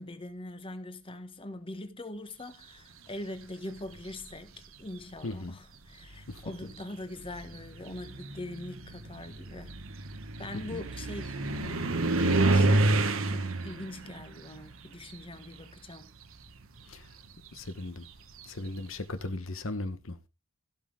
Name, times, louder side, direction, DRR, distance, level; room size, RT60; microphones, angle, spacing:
voice 1, 0.0-9.7 10.4-16.1, left 1 dB, 25° left, 1.4 m, -42 dB
sound 1, 3.8-4.3 5.3-5.4 6.0-15.9 16.2-18.8, right 2 dB, 65° right, 1.3 m, -30 dB
voice 2, 5.2-5.5 6.3-6.4 10.5-10.8 16.9-17.0 17.5-18.1 18.5-20.2, left 2 dB, 60° left, 1.1 m, -37 dB
17.0 x 6.0 x 3.5 m
head